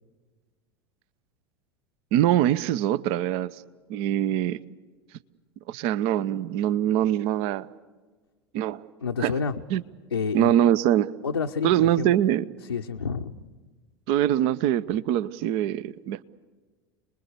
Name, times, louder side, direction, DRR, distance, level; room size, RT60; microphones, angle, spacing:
voice 1, 2.1-3.6 3.9-4.6 5.7-7.7 8.5-8.8 9.2-9.3 9.7-9.8 10.3-11.1 11.6-12.4 14.1-16.2, right 12 dB, 45° right, 19 dB, 0.7 m, -23 dB
voice 2, 9.0-9.6 10.1-10.5 11.2-12.1 12.6-13.6, left 5 dB, 80° left, 2 dB, 0.8 m, -29 dB
28.5 x 21.0 x 6.8 m, 1.4 s
figure-of-eight pair, 80°, 13 cm